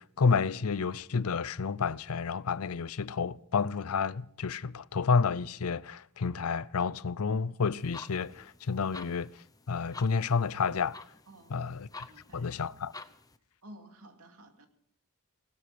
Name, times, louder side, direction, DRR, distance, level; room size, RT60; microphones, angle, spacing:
voice 1, 0.0-9.3 9.7-11.0 11.5-12.1 12.3-12.9, left 5 dB, 75° left, 0.6 m, -30 dB
sound 1, 7.8-13.4, left 3 dB, 15° left, 0.8 m, -50 dB
voice 2, 11.3-11.7 12.1-12.5 13.6-14.7, right 1 dB, 80° right, 2.5 m, -53 dB
19.0 x 12.5 x 5.9 m
head